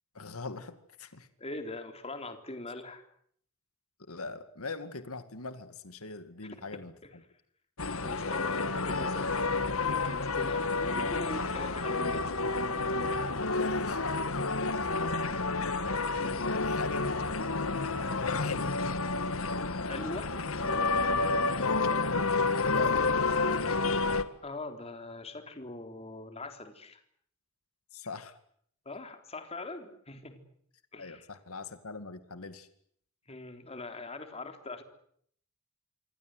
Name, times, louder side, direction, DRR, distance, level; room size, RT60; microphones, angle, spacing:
voice 1, 0.1-1.3 4.1-6.9 13.4-15.4 16.5-17.2 18.2-18.7 21.6-22.0 22.6-23.1 27.9-28.4 31.0-32.7, left 3 dB, 90° left, 10 dB, 2.3 m, -41 dB
voice 2, 1.4-3.0 8.0-9.6 9.9-12.3 15.0-15.1 16.2-16.4 19.9-20.3 24.4-27.0 28.9-30.4 30.9-31.3 33.3-34.8, left 2 dB, 30° left, 6 dB, 3.8 m, -42 dB
sound 1, 7.8-24.2, left 3 dB, 70° left, 1.9 m, -30 dB
27.5 x 23.5 x 8.0 m, 0.65 s
head